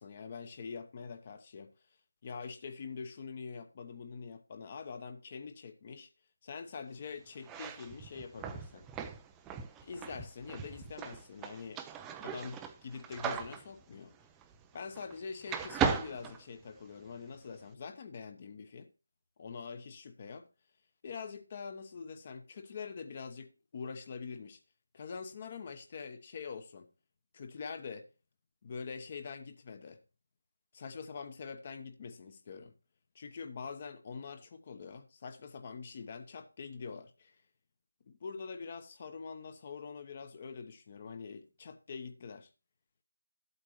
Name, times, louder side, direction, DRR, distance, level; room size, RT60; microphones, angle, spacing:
voice 1, 0.0-1.7 2.2-6.1 6.4-8.9 9.8-11.8 12.2-14.1 14.7-18.9 19.4-20.5 21.0-24.6 24.9-26.9 27.3-28.1 28.6-30.0 30.7-32.7 33.1-37.4 38.1-42.5, left 5 dB, 25° left, 1.0 m, -44 dB
sound 1, 7.4-15.2 15.5-17.1, right 6 dB, 10° right, 0.5 m, -38 dB
13.0 x 8.2 x 3.1 m
figure-of-eight pair, 165°, 0 cm